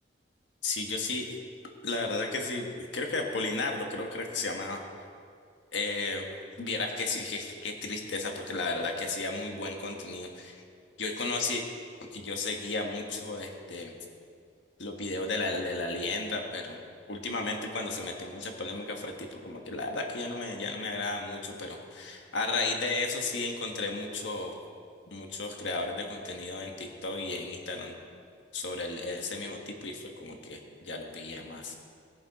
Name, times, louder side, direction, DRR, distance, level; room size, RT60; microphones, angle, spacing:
voice 1, 0.6-1.2 1.8-4.8 5.7-6.3 6.6-10.6 11.0-11.6 12.1-13.9 14.8-16.8 17.1-24.5 25.1-27.9 28.5-31.7, left 3 dB, 70° left, 2 dB, 1.6 m, -34 dB
19.5 x 7.2 x 4.9 m, 2.3 s
head